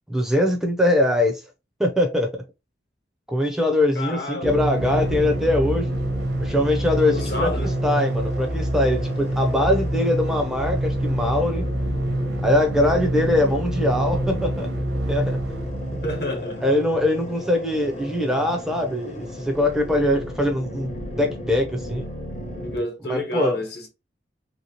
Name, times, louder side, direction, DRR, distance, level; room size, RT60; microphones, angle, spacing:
voice 1, 0.1-1.5 1.8-2.4 3.3-6.0 6.4-11.6 12.4-14.7 15.1-15.4 16.6-22.0 23.1-23.6, left 1 dB, 5° right, 0.5 m, -22 dB
voice 2, 3.9-4.7 7.1-7.7 16.0-16.6 22.6-23.9, left 1 dB, 60° left, 1.1 m, -29 dB
sound 1, 4.4-16.4, right 1 dB, 85° right, 0.8 m, -26 dB
sound 2, 4.8-22.8, equal, 40° left, 0.8 m, -35 dB
3.2 x 2.9 x 2.8 m
head